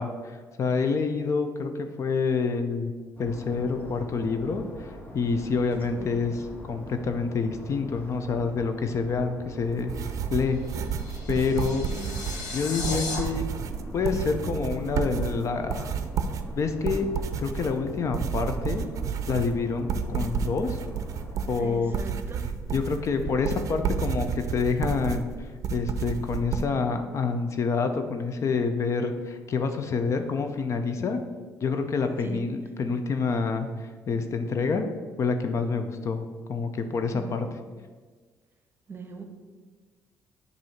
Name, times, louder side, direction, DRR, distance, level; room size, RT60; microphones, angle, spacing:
voice 1, 0.0-2.9 3.2-9.9 10.3-10.6 11.3-11.9 12.5-13.5 13.9-15.9 16.6-17.1 17.4-18.8 19.3-20.8 21.5-22.0 22.7-31.2 31.6-34.9 35.2-36.2 36.5-37.6, left 4 dB, 50° left, 7 dB, 0.6 m, -27 dB
sound 1, 3.2-21.5, equal, 30° left, 1.7 m, -42 dB
sound 2, 9.6-26.7, right 6 dB, 55° right, 0.5 m, -31 dB
sound 3, 10.5-13.2, left 4 dB, 80° left, 1.2 m, -36 dB
voice 2, 21.6-22.4 32.2-32.4 37.1-37.4 38.9-39.2, right 5 dB, 35° right, 5 dB, 0.9 m, -40 dB
7.7 x 2.7 x 5.7 m, 1.4 s
cardioid pair, 85°, 7 cm